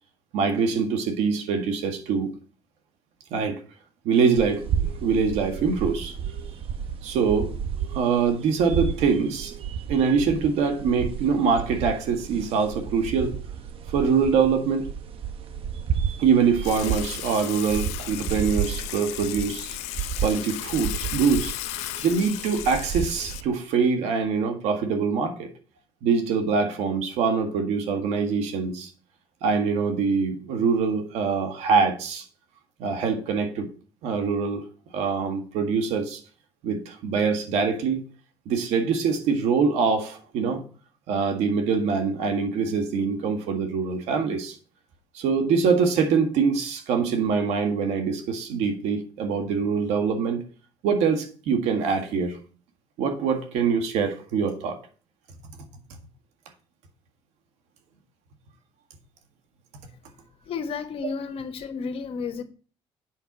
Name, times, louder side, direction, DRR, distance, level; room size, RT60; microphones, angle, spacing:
voice 1, 0.3-2.3 3.3-3.6 4.0-4.7 5.0-6.1 7.0-7.5 7.9-9.5 9.9-13.3 13.9-14.9 16.2-19.8 20.2-21.5 22.0-25.5 26.0-28.9 29.4-32.2 32.8-33.7 34.0-34.6 34.9-36.2 36.6-38.0 38.4-40.6 41.1-44.6 45.1-50.4 50.8-52.4 53.0-54.8, right 5 dB, 80° right, 1.7 m, -24 dB
sound 1, 4.4-23.5, right 8 dB, 55° right, 0.8 m, -32 dB
Water / Water tap faucet / Sink (filling or washing), 16.6-23.4, left 15 dB, 90° left, 0.6 m, -35 dB
voice 2, 60.5-62.4, left 5 dB, 55° left, 1.2 m, -32 dB
8.0 x 5.4 x 6.1 m
cardioid pair, 100°, 11 cm